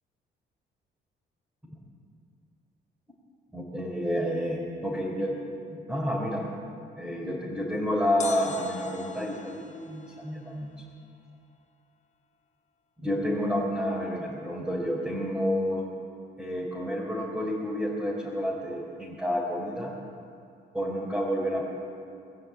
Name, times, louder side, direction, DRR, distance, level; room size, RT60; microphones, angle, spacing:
voice 1, 3.5-6.5 7.0-10.7 13.0-15.9 16.4-19.9 20.7-21.6, equal, 5° right, -6 dB, 4.0 m, -30 dB
sound 1, 8.2-11.3 11.5-11.6, left 5 dB, 35° left, 1.2 m, -43 dB
21.5 x 7.6 x 8.5 m, 2.4 s
cardioid pair, 90°, 20 cm